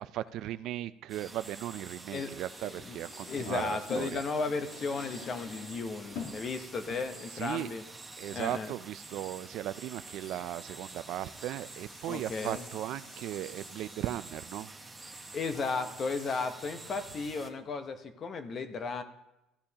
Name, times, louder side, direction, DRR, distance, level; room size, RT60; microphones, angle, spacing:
voice 1, 0.0-4.2 7.3-7.7 8.2-14.7, right 13 dB, 60° right, 15 dB, 0.3 m, -37 dB
sound 1, 1.1-17.5, right 3 dB, 10° right, 0.8 m, -48 dB
sound 2, 2.3-8.4, left 5 dB, 65° left, 1.5 m, -46 dB
voice 2, 2.6-3.0 3.2-7.8 8.3-8.7 12.1-12.6 15.1-19.0, left 4 dB, 35° left, 8 dB, 0.8 m, -35 dB
sound 3, 9.9-16.5 16.8-17.1, left 2 dB, 85° left, 3.5 m, -57 dB
14.5 x 8.7 x 2.8 m, 0.92 s
cardioid pair, 135°, 0 cm